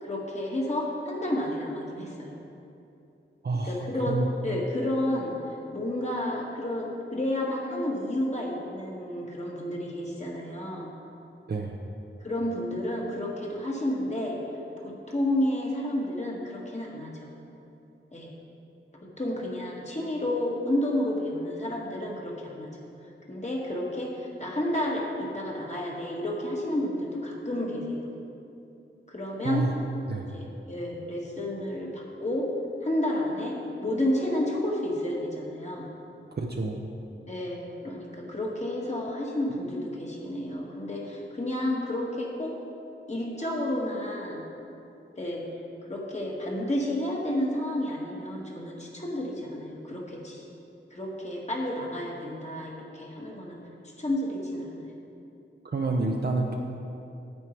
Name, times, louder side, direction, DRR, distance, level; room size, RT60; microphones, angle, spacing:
voice 1, 0.0-2.3 3.6-5.3 5.7-10.9 12.2-14.4 14.8-17.3 18.1-18.3 19.0-22.8 23.3-28.1 29.1-29.6 30.3-32.5 32.8-35.9 37.3-42.5 43.1-44.4 45.1-45.5 45.8-50.5 50.9-53.6 54.0-54.9, left 1 dB, 35° left, -3 dB, 1.8 m, -31 dB
voice 2, 3.4-3.7 4.1-4.3 11.5-11.8 29.4-29.7 30.1-30.3 36.4-36.8 55.6-56.5, right 3 dB, 55° right, 1 dB, 0.7 m, -28 dB
9.5 x 8.4 x 4.6 m, 2.7 s
wide cardioid pair, 80°, 20 cm